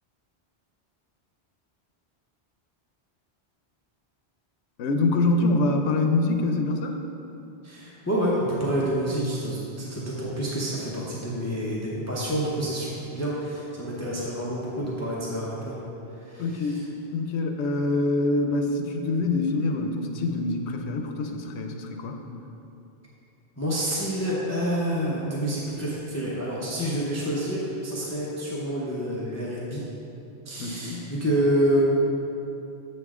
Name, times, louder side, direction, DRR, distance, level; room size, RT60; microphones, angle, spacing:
voice 1, 4.8-7.0 16.4-16.8 17.1-22.2 30.6-31.0, left 2 dB, 85° left, 4 dB, 0.9 m, -25 dB
voice 2, 7.6-15.8 16.1-16.8 23.6-29.8 30.4-31.8, right 1 dB, 15° left, -6 dB, 0.7 m, -28 dB
7.5 x 5.4 x 3.6 m, 3.0 s
omnidirectional pair, 1.1 m